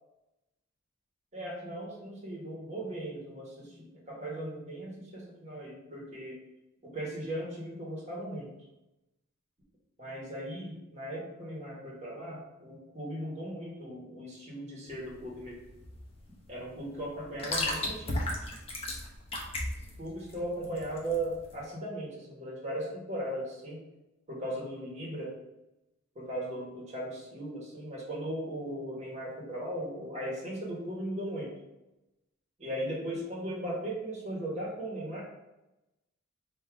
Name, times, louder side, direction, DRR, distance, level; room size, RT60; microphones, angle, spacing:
voice 1, 1.3-6.4 6.8-8.5 10.0-15.6 16.5-18.1 20.0-23.8 24.3-25.3 26.1-31.5 32.6-35.2, right 1 dB, 35° right, -4 dB, 1.3 m, -37 dB
sound 1, 14.9-21.6, left 1 dB, 30° left, 0.8 m, -36 dB
3.7 x 2.7 x 4.6 m, 0.96 s
head